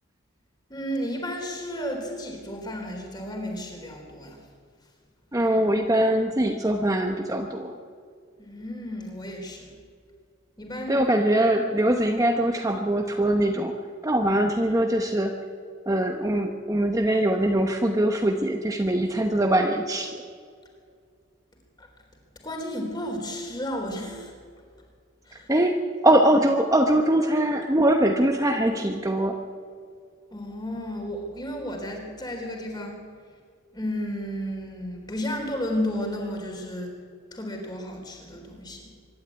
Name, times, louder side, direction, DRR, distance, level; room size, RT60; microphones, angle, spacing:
voice 1, 0.7-4.4 8.4-9.7 10.6-11.0 11.3-11.4 21.8-21.9 22.4-24.3 25.3-25.5 30.3-33.0 33.7-36.9 37.3-38.9, equal, 20° left, 2 dB, 3.9 m, -33 dB
voice 2, 5.3-7.7 10.9-13.8 14.0-15.4 15.9-20.2 25.5-29.4, right 1 dB, 15° right, 4 dB, 1.0 m, -22 dB
24.5 x 12.0 x 9.5 m, 2.1 s
head